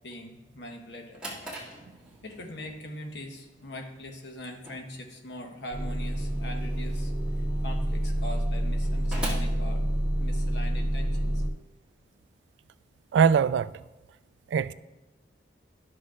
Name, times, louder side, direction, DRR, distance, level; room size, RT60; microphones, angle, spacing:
voice 1, 0.0-1.2 2.2-9.8 10.2-11.4, left 1 dB, 75° left, 1.2 m, -42 dB
Drawer open or close, 1.1-10.5, right 1 dB, 5° right, 1.8 m, -44 dB
Motor vehicle (road) / Engine starting / Idling, 5.7-11.5, right 1 dB, 35° right, 1.0 m, -28 dB
voice 2, 13.1-13.7 14.5-14.7, right 7 dB, 85° right, 0.3 m, -21 dB
12.0 x 6.3 x 2.5 m
head